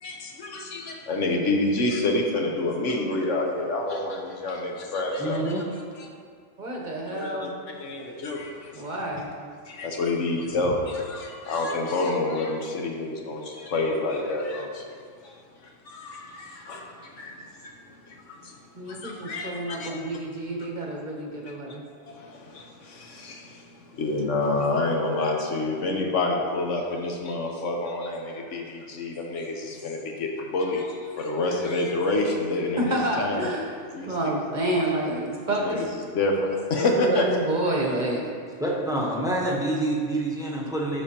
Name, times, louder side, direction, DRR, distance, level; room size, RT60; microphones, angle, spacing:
voice 1, 0.0-5.5 6.0-6.1 7.1-8.8 9.7-14.8 15.2-15.3 15.6-17.7 18.0-18.6 18.9-19.9 20.6-20.7 22.1-33.5 33.9-34.3 35.6-35.9 36.1-37.3, left 2 dB, 70° left, 1 dB, 1.2 m, -28 dB
voice 2, 5.2-5.6 38.6-41.0, right 1 dB, 5° right, -3 dB, 0.8 m, -27 dB
voice 3, 6.6-7.5 8.7-9.3 18.8-21.8 32.8-33.7 34.0-35.9 36.8-38.2, right 1 dB, 40° right, -2 dB, 0.9 m, -28 dB
12.0 x 5.2 x 2.9 m, 2.1 s
omnidirectional pair, 1.3 m